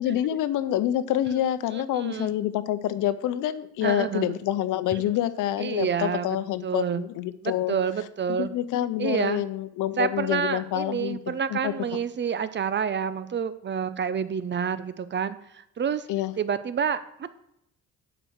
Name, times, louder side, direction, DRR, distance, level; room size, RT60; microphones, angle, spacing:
voice 1, 0.0-7.7 8.4-11.7 16.1-16.3, left 12 dB, 85° left, 13 dB, 0.7 m, -27 dB
voice 2, 1.7-2.3 3.8-4.3 5.1-5.2 5.6-6.4 6.6-7.0 7.4-8.5 9.0-9.4 10.0-16.1 16.4-17.3, right 7 dB, 40° right, 14 dB, 0.6 m, -28 dB
7.7 x 5.0 x 6.3 m, 0.77 s
cardioid pair, 90°, 30 cm